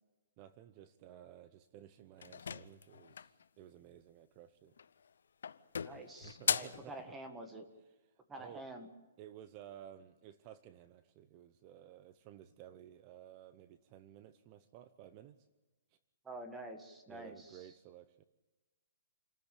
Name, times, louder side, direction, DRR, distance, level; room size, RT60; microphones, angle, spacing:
voice 1, 0.4-4.7 6.2-7.2 8.1-8.7 9.2-15.4 17.1-18.2, right 11 dB, 25° right, 13 dB, 0.7 m, -55 dB
sound 1, 2.2-3.4 4.7-5.1 5.4-6.9, left 6 dB, 80° left, 0.8 m, -38 dB
voice 2, 5.8-7.7 8.3-8.9 16.2-17.6, right 1 dB, 10° right, 6 dB, 1.6 m, -48 dB
27.5 x 14.0 x 8.4 m, 1.2 s
hypercardioid pair, 165°, 0 cm